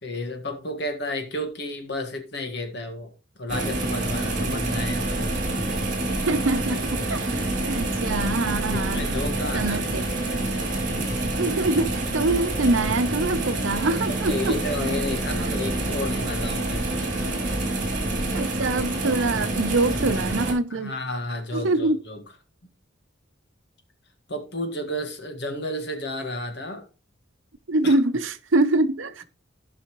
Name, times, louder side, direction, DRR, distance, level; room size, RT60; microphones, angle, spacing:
voice 1, 0.0-3.1 3.4-5.4 8.7-9.8 14.0-16.9 20.7-22.2 24.3-26.8 27.8-28.0, left 1 dB, 60° left, 1.8 m, -32 dB
sound 1, 3.5-20.5, right 2 dB, 40° right, 3.2 m, -27 dB
voice 2, 6.1-9.1 9.5-10.2 11.4-14.6 18.3-21.0 21.5-22.0 27.7-29.2, right 2 dB, 75° right, 0.8 m, -24 dB
16.5 x 5.6 x 3.1 m
head